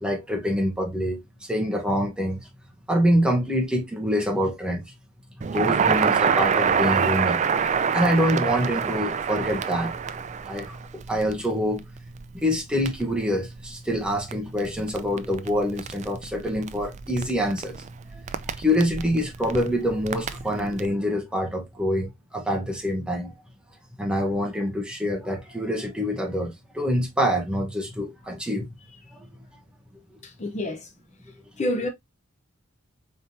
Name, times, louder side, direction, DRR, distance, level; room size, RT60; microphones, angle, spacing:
voice 1, 0.0-1.2 1.5-2.4 2.9-4.9 5.5-7.4 7.9-9.9 10.4-11.8 12.3-17.8 18.1-23.3 24.0-28.7 29.1-29.3, equal, 5° right, 1.0 m, -26 dB
Crackle, 5.4-20.9, right 6 dB, 35° right, 0.4 m, -28 dB
voice 2, 30.2-30.9 31.6-31.9, left 1 dB, 35° left, 0.6 m, -28 dB
4.3 x 3.5 x 2.6 m
head